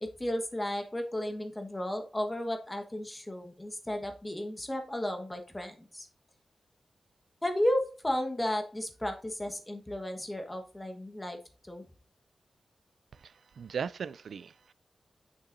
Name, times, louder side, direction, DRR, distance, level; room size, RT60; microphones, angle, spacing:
voice 1, 0.0-6.1 7.4-11.4 11.6-11.8, left 1 dB, 15° left, 1.3 m, -33 dB
voice 2, 13.1-14.7, right 6 dB, 85° right, 0.3 m, -38 dB
8.7 x 6.6 x 2.6 m
wide cardioid pair, 175°, 0 cm